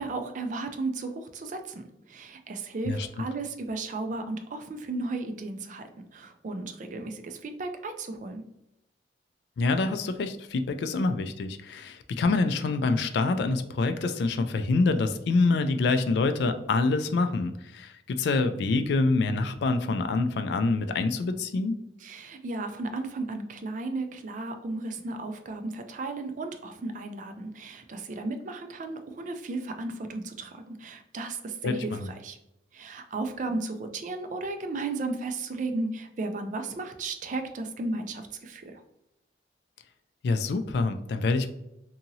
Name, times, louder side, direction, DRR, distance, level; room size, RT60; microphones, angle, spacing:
voice 1, 0.0-8.4 22.0-32.4 32.7-38.8, right 3 dB, 45° right, 6 dB, 0.3 m, -34 dB
voice 2, 9.6-21.8 31.6-32.1 40.2-41.5, left 3 dB, 60° left, 8 dB, 0.3 m, -26 dB
2.8 x 2.7 x 2.6 m, 0.86 s
head